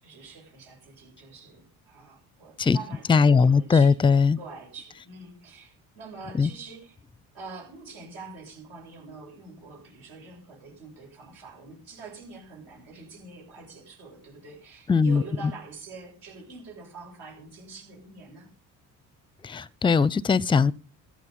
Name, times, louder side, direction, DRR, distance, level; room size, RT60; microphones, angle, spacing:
voice 1, 0.0-4.0 4.4-7.0 7.3-18.5, right 3 dB, 80° right, 7.4 m, -45 dB
voice 2, 3.1-4.4 6.4-6.5 14.9-15.2 19.4-20.7, left 5 dB, 15° left, 0.5 m, -20 dB
14.0 x 10.5 x 5.4 m
hypercardioid pair, 60°, 39 cm